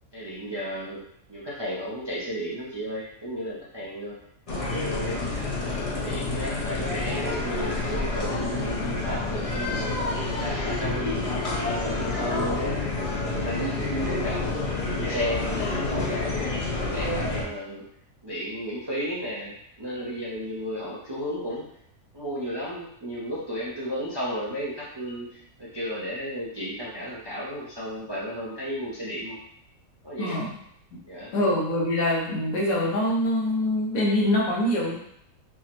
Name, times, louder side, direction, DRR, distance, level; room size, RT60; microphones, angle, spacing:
voice 1, 0.1-1.0 1.3-4.2 4.6-5.3 5.9-9.9 10.3-11.2 11.6-12.8 13.2-16.5 16.9-17.8 18.2-21.6 22.1-25.3 25.6-29.4 30.0-30.4 31.1-31.3, equal, 35° right, -6 dB, 0.4 m, -33 dB
sound 1, 4.5-17.4, left 2 dB, 40° left, 0.5 m, -28 dB
voice 2, 30.2-30.5 31.3-35.0, left 1 dB, 80° left, -4 dB, 1.5 m, -24 dB
5.4 x 2.1 x 2.9 m, 0.70 s
omnidirectional pair, 1.5 m